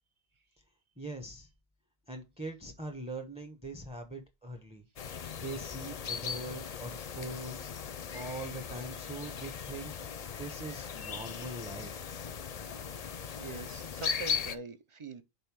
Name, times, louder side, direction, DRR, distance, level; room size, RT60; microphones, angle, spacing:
voice 1, 1.0-1.5 2.1-4.8 5.4-10.1 10.4-11.9, right 2 dB, 5° right, 0.9 m, -42 dB
sound 1, 5.0-14.6, left 6 dB, 45° left, 0.6 m, -38 dB
voice 2, 13.4-15.2, right 3 dB, 35° right, 0.7 m, -43 dB
5.4 x 4.0 x 5.9 m
omnidirectional pair, 1.1 m